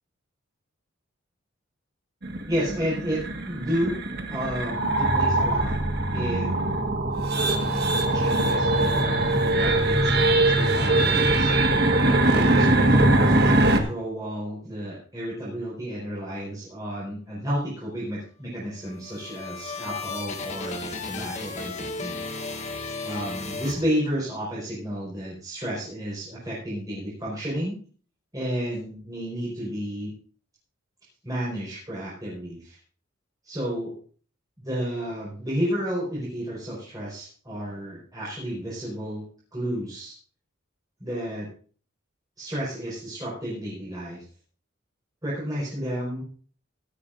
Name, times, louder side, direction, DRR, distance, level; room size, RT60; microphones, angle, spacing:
sound 1, 2.2-13.8, right 2 dB, 50° right, 1.5 m, -22 dB
voice 1, 2.5-4.0 4.3-5.8 6.1-6.9 7.3-11.9 12.2-22.2 23.0-27.8 28.3-30.1 31.2-32.8 33.4-33.9 34.6-39.2 39.5-40.1 41.0-41.5 42.4-44.2 45.2-46.2, equal, 20° right, -7 dB, 4.5 m, -32 dB
sound 2, 18.8-24.4, left 3 dB, 35° left, 1.7 m, -35 dB
17.0 x 12.0 x 2.5 m, 0.42 s
head